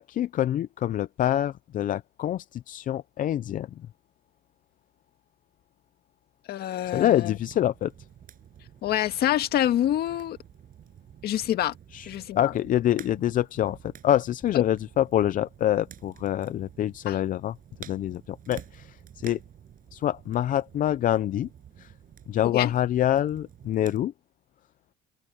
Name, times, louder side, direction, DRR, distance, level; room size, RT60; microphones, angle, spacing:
voice 1, 0.0-3.9 6.9-7.9 11.9-17.5 17.8-19.4 19.9-21.5 21.8-21.9 22.3-24.1, left 12 dB, 50° left, 0.5 m, -26 dB
voice 2, 6.5-7.3 8.8-10.4 11.2-11.7 12.1-12.5 17.1-17.2 22.5-22.7, left 12 dB, 70° left, 1.9 m, -26 dB
sound 1, 6.8-24.0, right 10 dB, 55° right, 8.0 m, -50 dB
cardioid pair, 110°, 17 cm